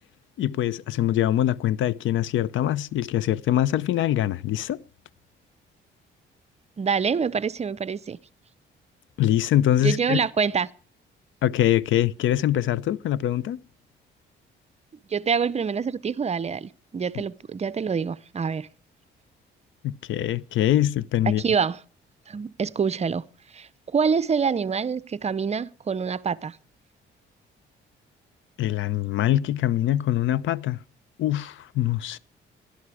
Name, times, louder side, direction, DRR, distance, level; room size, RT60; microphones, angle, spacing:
voice 1, 0.4-4.8 9.2-10.2 11.4-13.6 19.8-21.4 28.6-30.8 31.2-32.2, left 12 dB, 75° left, 0.6 m, -23 dB
voice 2, 6.8-8.2 9.8-10.7 15.1-18.7 21.3-21.8 22.3-23.3 23.5-26.6, right 6 dB, 35° right, 0.6 m, -26 dB
17.0 x 11.5 x 4.8 m
cardioid pair, 90°, 20 cm